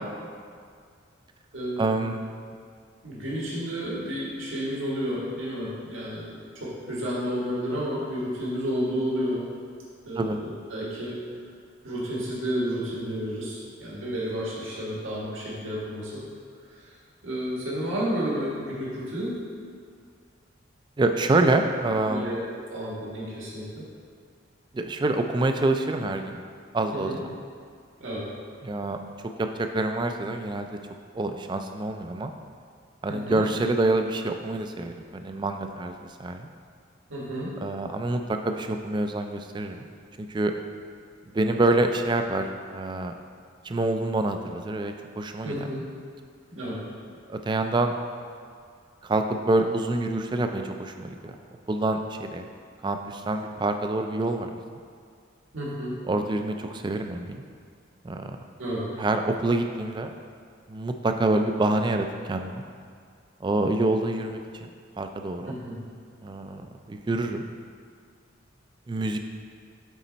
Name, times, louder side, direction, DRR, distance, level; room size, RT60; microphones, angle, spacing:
voice 1, 1.8-2.2 10.2-10.4 21.0-22.3 24.7-26.4 26.7-27.1 28.6-29.0 29.4-30.7 31.1-32.3 33.0-35.9 36.2-36.5 37.6-39.9 40.2-40.5 41.3-43.1 43.6-45.7 47.3-47.9 49.0-51.3 51.7-52.5 52.8-54.5 56.1-57.4 58.0-58.4 59.0-60.1 60.7-62.6 63.4-64.7 65.0-65.6 66.2-67.4 68.9-69.2, right 2 dB, 20° right, 6 dB, 0.3 m, -26 dB
voice 2, 3.0-9.4 10.0-11.2 11.8-16.2 17.2-19.3 22.1-23.6 26.9-27.2 28.0-28.2 33.1-33.4 37.1-37.5 45.4-45.8 46.5-46.8 55.5-56.0 58.6-58.8 65.5-65.7, equal, 75° right, -6 dB, 1.7 m, -31 dB
8.2 x 4.2 x 4.0 m, 2.1 s
head